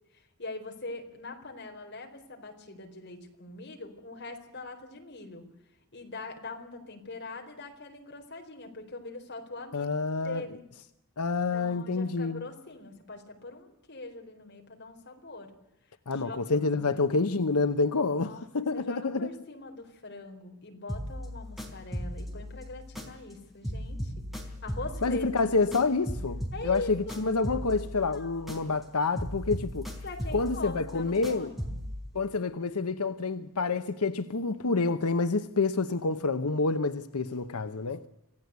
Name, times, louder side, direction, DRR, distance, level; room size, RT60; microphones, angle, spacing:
voice 1, 0.1-5.4 5.9-10.6 11.5-15.5 16.1-16.6 16.9-17.1 18.2-18.4 18.7-24.3 24.6-25.6 26.5-27.2 28.1-28.5 30.0-31.8, left 2 dB, 50° left, 4.3 m, -42 dB
voice 2, 9.7-10.4 11.2-12.4 16.1-19.3 25.0-29.9 30.3-31.5 32.1-38.0, left 3 dB, 90° left, 0.9 m, -28 dB
sound 1, 20.9-23.4 23.6-28.9 29.2-32.0, equal, ahead, 4.2 m, -38 dB
26.5 x 16.5 x 8.2 m
head